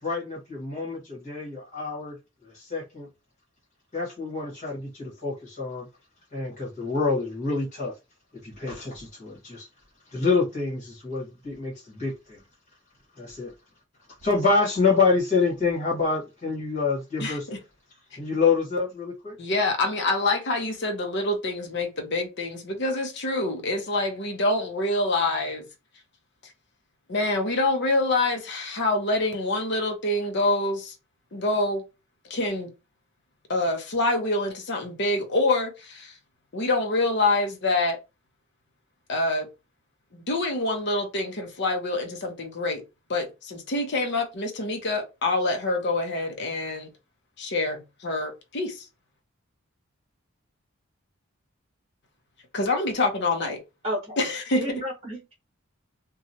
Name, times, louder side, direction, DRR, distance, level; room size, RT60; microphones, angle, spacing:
voice 1, 0.0-2.2 2.4-3.1 3.9-5.9 6.3-7.9 8.4-9.7 10.1-12.4 13.2-13.5 14.2-17.5 18.1-19.4, left 4 dB, 35° left, 1.4 m, -27 dB
voice 2, 17.2-17.6 19.4-25.6 27.1-30.9 31.3-31.8 32.2-32.7 33.5-36.2 36.5-38.0 39.1-39.5 40.1-42.8 43.1-46.9 47.4-48.9 52.5-53.6 54.2-54.6, left 2 dB, 50° left, 0.7 m, -26 dB
voice 3, 53.8-54.2 54.6-55.3, equal, 30° right, 1.0 m, -31 dB
2.9 x 2.3 x 2.8 m
head